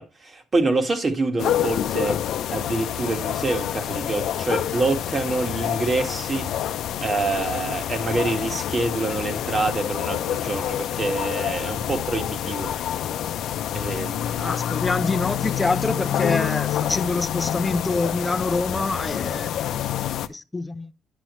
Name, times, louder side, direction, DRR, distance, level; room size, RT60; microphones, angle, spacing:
voice 1, 0.0-2.2 2.5-6.5 7.0-12.7 13.7-14.6, right 3 dB, 35° right, 1.8 m, -26 dB
sound 1, 1.4-20.3, left 10 dB, 80° left, 0.6 m, -27 dB
voice 2, 14.4-19.5 20.3-20.9, left 3 dB, 15° left, 0.6 m, -26 dB
10.0 x 5.7 x 3.1 m
cardioid pair, 90°, 0 cm